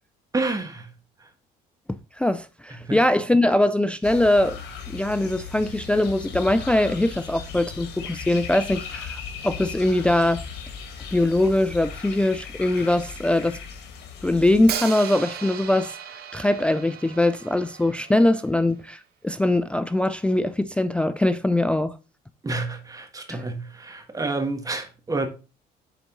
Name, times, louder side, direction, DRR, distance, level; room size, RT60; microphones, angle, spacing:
voice 1, 0.3-0.9 1.2-1.3 2.8-3.0 22.4-25.3, right 3 dB, 20° right, 1.6 m, -29 dB
voice 2, 2.2-4.6 4.9-10.4 11.1-13.6 14.2-16.0 16.3-21.9 23.3-23.4, left 1 dB, 5° left, 0.3 m, -22 dB
sound 1, 4.0-14.7, left 6 dB, 80° left, 1.9 m, -37 dB
Hi-hat, 14.7-18.6, right 8 dB, 70° right, 1.2 m, -36 dB
8.3 x 4.0 x 3.9 m
cardioid pair, 110°, 17 cm